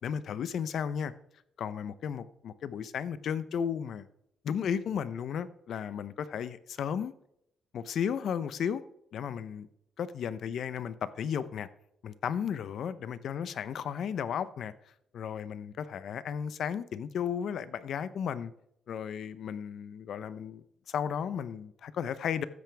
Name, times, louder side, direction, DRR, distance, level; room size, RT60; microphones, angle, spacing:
voice 1, 0.0-1.1 1.6-4.1 4.4-7.1 7.7-8.8 9.1-9.7 10.0-11.7 12.0-14.7 15.1-18.5 18.9-22.5, left 8 dB, 65° left, 0.7 m, -34 dB
13.5 x 9.4 x 3.4 m
cardioid pair, 90°, 0 cm